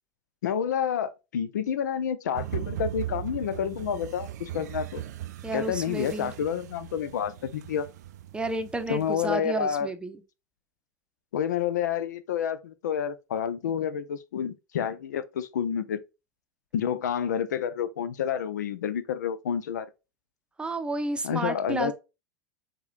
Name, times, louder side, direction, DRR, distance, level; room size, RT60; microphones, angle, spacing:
voice 1, 0.4-5.0 5.5-7.9 8.9-9.9 11.3-16.0 16.7-19.9 21.2-21.9, left 8 dB, 70° left, 0.5 m, -29 dB
sound 1, 2.3-9.4, right 12 dB, 65° right, 0.4 m, -38 dB
voice 2, 5.4-6.3 8.3-10.2 20.6-21.9, right 2 dB, 10° right, 0.7 m, -31 dB
4.8 x 3.7 x 2.6 m
figure-of-eight pair, 85°, 10 cm